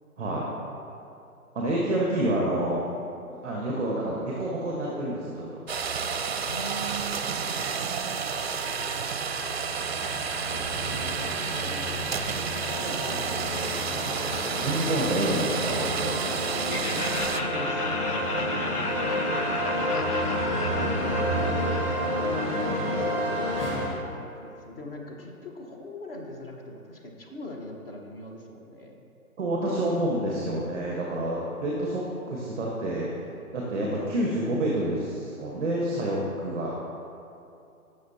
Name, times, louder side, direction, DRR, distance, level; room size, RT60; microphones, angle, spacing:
voice 1, 1.5-2.8 3.3-5.4 14.5-15.9 29.4-33.1 33.5-36.7, right 1 dB, 5° right, -3 dB, 0.6 m, -28 dB
sound 1, 5.7-17.4, right 6 dB, 45° right, 0.5 m, -30 dB
voice 2, 6.5-7.2 8.3-14.2 14.9-15.1 17.4-18.7 19.3-19.7 20.6-23.3 23.9-29.0, left 1 dB, 40° left, 1 dB, 1.3 m, -42 dB
sound 2, 9.2-23.9, equal, 15° left, 1.1 m, -30 dB
Laughter, 16.7-23.6, left 2 dB, 80° left, 0.9 m, -34 dB
15.5 x 6.4 x 2.8 m, 2.7 s
figure-of-eight pair, 135°, 45 cm